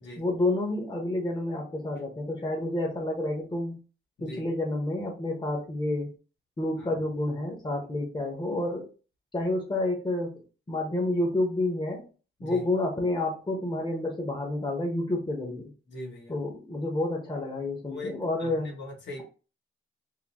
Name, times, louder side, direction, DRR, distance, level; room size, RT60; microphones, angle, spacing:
voice 1, 0.2-3.8 4.2-6.1 6.6-8.9 9.3-10.4 10.7-12.0 12.4-15.7 16.3-18.7, left 2 dB, 20° left, 0 dB, 1.0 m, -29 dB
voice 2, 4.2-4.5 6.8-7.0 12.4-12.6 15.9-16.3 17.8-19.2, left 2 dB, 60° left, 0 dB, 1.4 m, -41 dB
3.8 x 2.8 x 2.9 m, 0.34 s
wide cardioid pair, 120°, 21 cm